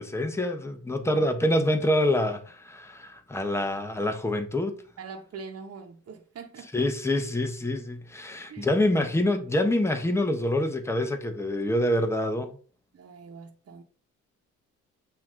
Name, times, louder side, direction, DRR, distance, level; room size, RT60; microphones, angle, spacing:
voice 1, 0.0-4.7 6.7-12.6, left 1 dB, 10° left, 1.0 m, -26 dB
voice 2, 1.0-1.4 5.0-6.9 8.5-8.7 12.9-13.8, right 5 dB, 55° right, 1.3 m, -43 dB
8.4 x 3.0 x 3.8 m
cardioid pair, 90°, 30 cm